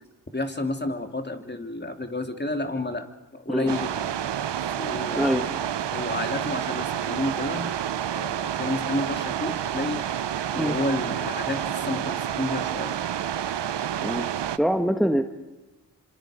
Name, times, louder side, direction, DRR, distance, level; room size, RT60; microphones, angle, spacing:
voice 1, 0.3-4.1 4.8-5.5 5.9-7.7 8.1-10.0 10.5-13.0, left 2 dB, 25° left, 6 dB, 2.9 m, -30 dB
sound 1, 3.7-14.6, right 10 dB, 80° right, 0.8 m, -29 dB
voice 2, 5.1-5.5 10.6-10.8 14.0-14.3 14.6-15.2, equal, ahead, 6 dB, 1.6 m, -24 dB
27.5 x 26.0 x 5.1 m, 1.1 s
cardioid pair, 40°, 42 cm